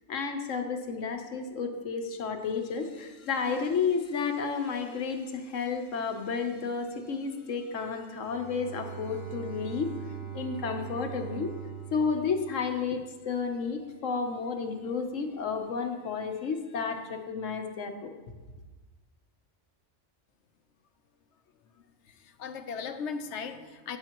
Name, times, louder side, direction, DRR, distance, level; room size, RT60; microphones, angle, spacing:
voice 1, 0.1-9.9 10.3-11.5 11.9-18.1, left 5 dB, 85° left, 5 dB, 1.3 m, -32 dB
Bowed string instrument, 8.2-13.2, right 9 dB, 50° right, 1.1 m, -42 dB
voice 2, 21.7-24.0, left 5 dB, 70° left, 8 dB, 1.0 m, -38 dB
14.0 x 8.8 x 3.0 m, 1.2 s
omnidirectional pair, 1.3 m